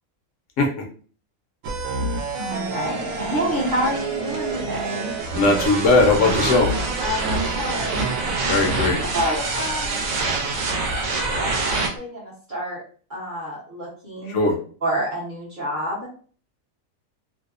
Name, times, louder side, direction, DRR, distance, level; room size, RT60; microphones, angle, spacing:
sound 1, 1.6-11.9, right 3 dB, 85° right, 1.0 m, -26 dB
voice 1, 2.3-5.1 7.0-8.2 9.1-10.1 11.3-12.8 13.1-14.4 14.8-16.1, equal, 45° right, -5 dB, 0.8 m, -28 dB
voice 2, 5.3-6.7 8.5-9.0 14.3-14.6, left 2 dB, 70° left, 2 dB, 0.9 m, -19 dB
2.6 x 2.0 x 2.4 m, 0.42 s
omnidirectional pair, 1.4 m